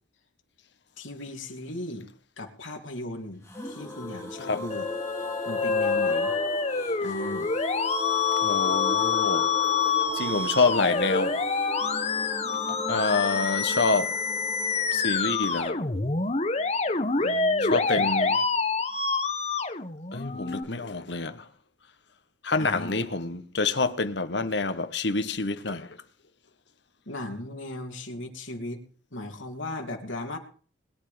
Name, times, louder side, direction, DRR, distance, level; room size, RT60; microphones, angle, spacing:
voice 1, 1.0-4.8 5.4-6.3 7.0-7.5 17.2-18.1 22.6-23.1 27.1-28.8 29.1-30.4, left 1 dB, 90° left, 2.8 m, -37 dB
sound 1, 3.5-17.1 17.3-17.4 17.7-17.8, left 1 dB, 15° left, 3.8 m, -36 dB
Musical instrument, 4.7-20.6, left 5 dB, 35° left, 1.1 m, -27 dB
voice 2, 8.4-9.5 10.1-11.9 12.9-14.2 14.9-15.8 17.6-18.4 20.1-21.5 22.4-26.0, left 3 dB, 65° left, 1.3 m, -27 dB
21.0 x 9.5 x 5.2 m
head